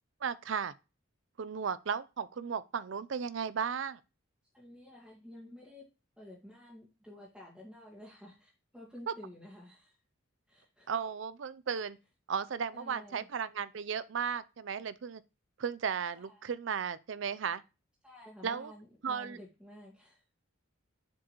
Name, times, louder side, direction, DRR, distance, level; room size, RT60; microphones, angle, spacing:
voice 1, 0.2-0.7 1.4-4.0 9.1-9.2 10.9-12.0 12.3-15.2 15.6-17.6 18.4-18.7 19.0-19.4, right 6 dB, 65° right, 0.5 m, -35 dB
voice 2, 4.5-5.8 6.2-10.0 10.5-10.9 12.7-13.3 16.1-16.5 18.0-20.2, left 1 dB, 5° right, 1.6 m, -51 dB
7.3 x 4.8 x 3.0 m
head